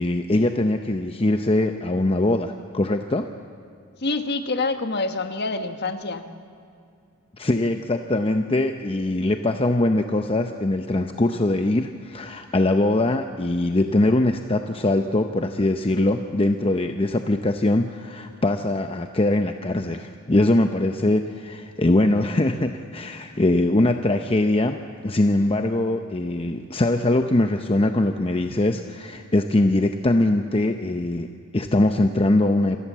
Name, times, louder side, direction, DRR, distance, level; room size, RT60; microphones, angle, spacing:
voice 1, 0.0-3.3 7.4-24.8 25.0-32.8, left 1 dB, 25° left, 6 dB, 0.7 m, -22 dB
voice 2, 4.0-6.3, left 3 dB, 50° left, 7 dB, 1.5 m, -26 dB
27.0 x 19.0 x 7.5 m, 2.5 s
head